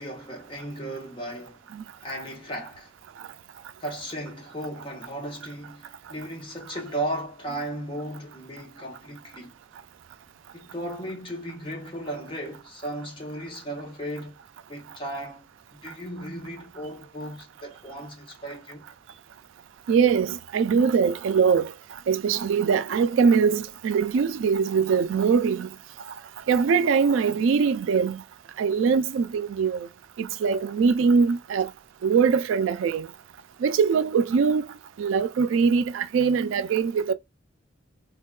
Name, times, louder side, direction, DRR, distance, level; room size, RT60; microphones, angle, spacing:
voice 1, 0.0-1.7 2.0-2.9 3.8-9.5 10.5-14.4 14.7-18.9, right 1 dB, 25° left, 0.8 m, -36 dB
voice 2, 19.9-21.7 22.1-25.7 26.5-28.2 28.6-29.9 30.2-31.7 32.0-33.1 33.6-34.6 35.0-37.1, right 6 dB, 75° right, 0.3 m, -22 dB
3.5 x 2.2 x 2.3 m
head